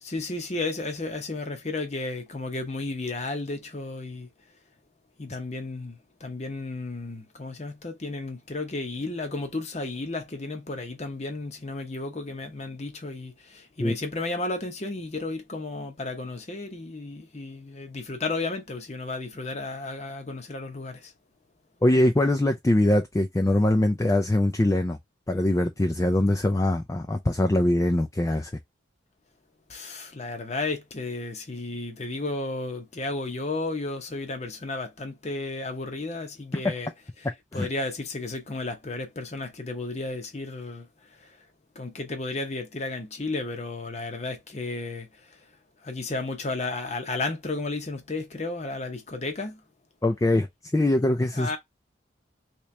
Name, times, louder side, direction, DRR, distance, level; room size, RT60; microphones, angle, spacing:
voice 1, 0.0-4.3 5.2-21.1 29.7-36.9 37.2-37.3 37.5-40.9 41.2-41.4 41.8-45.4 45.8-49.6 51.3-51.6, left 2 dB, 35° left, 0.7 m, -33 dB
voice 2, 21.8-25.0 25.3-28.5 36.5-36.7 37.5-37.7 50.0-50.5 50.7-51.6, left 1 dB, 15° left, 0.3 m, -22 dB
3.0 x 2.9 x 3.2 m
head